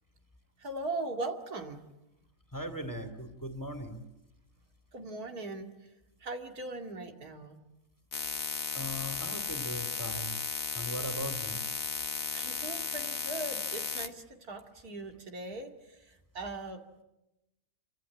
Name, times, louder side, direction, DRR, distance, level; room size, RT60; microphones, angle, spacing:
voice 1, 0.6-1.8 4.9-5.9 6.2-7.6 12.3-17.0, right 2 dB, 90° right, 4 dB, 2.8 m, -40 dB
voice 2, 2.5-4.0 8.7-10.3 10.7-11.6, equal, 10° left, 7 dB, 2.4 m, -39 dB
sound 1, 8.1-14.1, left 7 dB, 65° left, 1.7 m, -35 dB
27.5 x 24.5 x 8.6 m, 0.96 s
omnidirectional pair, 1.6 m